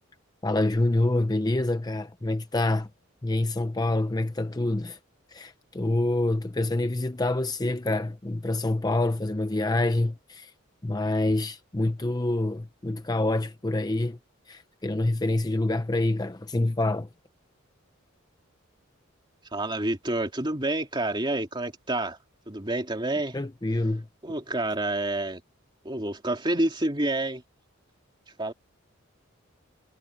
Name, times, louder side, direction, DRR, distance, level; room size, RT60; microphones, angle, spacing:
voice 1, 0.4-2.9 3.2-5.0 5.3-10.5 10.8-14.2 14.5-17.1 23.3-24.1, left 2 dB, 20° left, 0.6 m, -26 dB
voice 2, 19.5-22.2 22.5-23.4 24.2-25.4 25.8-27.4 28.4-28.5, right 1 dB, 20° right, 2.8 m, -28 dB
head